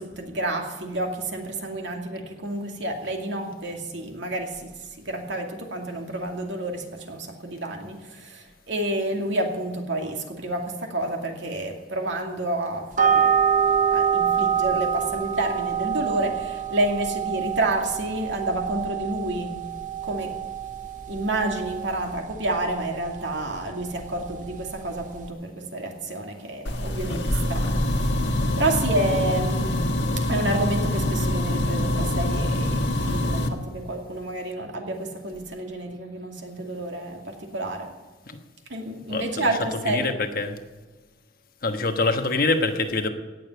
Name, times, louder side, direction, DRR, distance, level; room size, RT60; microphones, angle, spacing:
voice 1, 0.0-4.7 5.0-13.3 13.9-19.6 20.0-20.3 21.1-28.1 28.6-29.7 30.3-37.9 38.7-40.1, right 1 dB, 70° right, 2 dB, 2.4 m, -29 dB
sound 1, 12.9-25.3, right 8 dB, 40° right, 0.7 m, -27 dB
sound 2, 26.6-33.5, left 1 dB, 70° left, 1.6 m, -25 dB
voice 2, 39.1-40.6 41.6-43.1, left 3 dB, 50° left, 6 dB, 1.3 m, -25 dB
17.5 x 6.9 x 9.4 m, 1.3 s
head